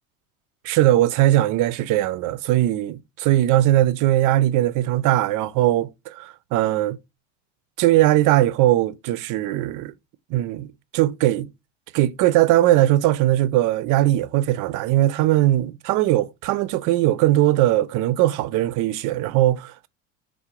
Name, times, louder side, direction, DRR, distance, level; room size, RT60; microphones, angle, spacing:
voice 1, 0.6-7.0 7.8-9.9 10.3-10.7 10.9-11.5 11.9-19.9, right 14 dB, 55° right, 0.5 m, -20 dB
3.7 x 2.2 x 4.4 m
supercardioid pair, 95°, 39 cm